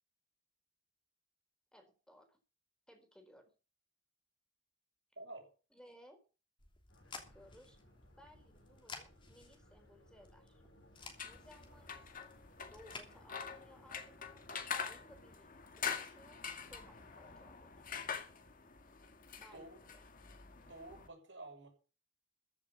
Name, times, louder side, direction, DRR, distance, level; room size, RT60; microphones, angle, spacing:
voice 1, 1.7-2.4 2.9-3.5 5.7-6.2 7.1-7.8 8.2-10.6 11.2-12.3 12.7-14.4 14.8-16.4 16.7-17.9 19.4-20.0, equal, 5° left, 5 dB, 4.2 m, -61 dB
voice 2, 5.2-5.5 19.5-19.8 20.6-21.7, right 2 dB, 85° right, 1 dB, 6.5 m, -50 dB
sound 1, 6.6-13.1, left 3 dB, 25° left, 3.0 m, -55 dB
sound 2, 6.9-15.4, left 1 dB, 90° left, 5.9 m, -65 dB
sound 3, 11.0-21.1, left 6 dB, 50° left, 1.9 m, -45 dB
15.0 x 7.4 x 7.2 m, 0.35 s
head